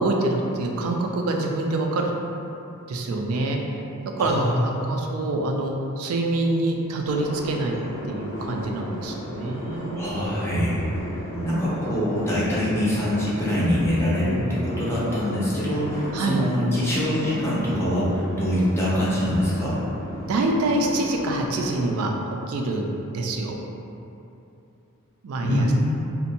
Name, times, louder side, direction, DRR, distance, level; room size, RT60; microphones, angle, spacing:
voice 1, 0.0-2.1 2.9-3.6 4.2-7.8 8.1-10.0 11.3-11.7 16.1-16.4 20.3-22.1 22.5-23.6 25.2-25.7, right 2 dB, 75° right, 1 dB, 0.3 m, -26 dB
voice 2, 4.2-4.9 10.0-10.8 11.4-19.8 25.4-25.9, equal, 10° left, -9 dB, 0.4 m, -24 dB
sound 1, 7.0-21.9, equal, 75° left, 0.5 m, -35 dB
2.6 x 2.1 x 2.7 m, 2.8 s
head